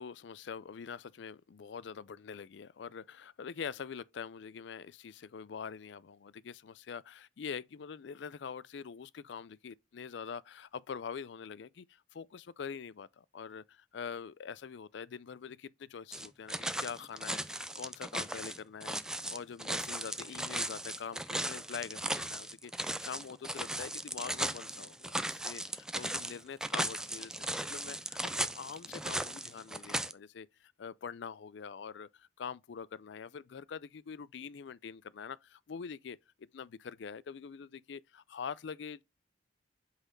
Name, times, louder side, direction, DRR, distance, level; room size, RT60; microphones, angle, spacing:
voice 1, 0.0-39.0, left 6 dB, 65° left, 0.4 m, -44 dB
sound 1, 16.1-30.1, right 1 dB, 5° right, 0.3 m, -37 dB
8.0 x 4.1 x 3.9 m
head